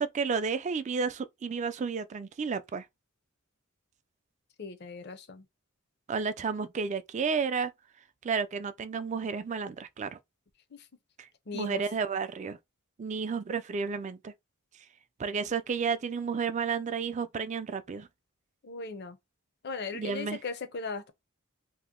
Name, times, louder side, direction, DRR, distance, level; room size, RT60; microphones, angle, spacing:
voice 1, 0.0-2.8 6.1-7.7 8.2-10.2 11.5-12.6 13.0-14.3 15.2-18.1 19.9-20.4, right 5 dB, 35° right, 0.3 m, -31 dB
voice 2, 4.6-5.4 10.7-10.8 11.5-11.8 18.6-19.2 19.6-21.1, left 4 dB, 50° left, 0.6 m, -37 dB
2.8 x 2.1 x 3.6 m
head